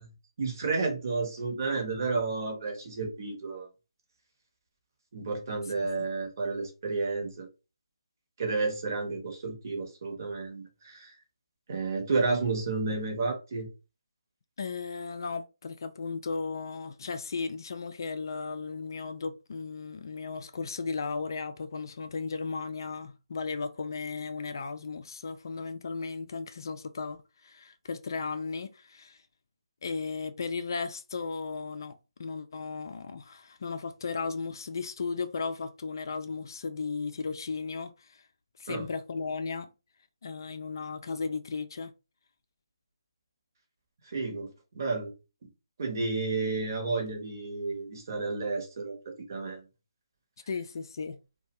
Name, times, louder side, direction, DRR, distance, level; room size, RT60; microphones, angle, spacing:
voice 1, 0.4-3.7 5.1-7.5 8.4-11.1 11.7-13.7 38.7-38.8 44.1-44.5 44.7-45.1 45.8-49.6, right 3 dB, 40° right, 0.9 m, -31 dB
voice 2, 14.6-29.2 29.8-31.9 32.2-38.2 38.6-39.7 40.2-41.9 50.5-51.2, left 4 dB, 45° left, 0.3 m, -35 dB
2.5 x 2.2 x 2.9 m
figure-of-eight pair, 155°, 3 cm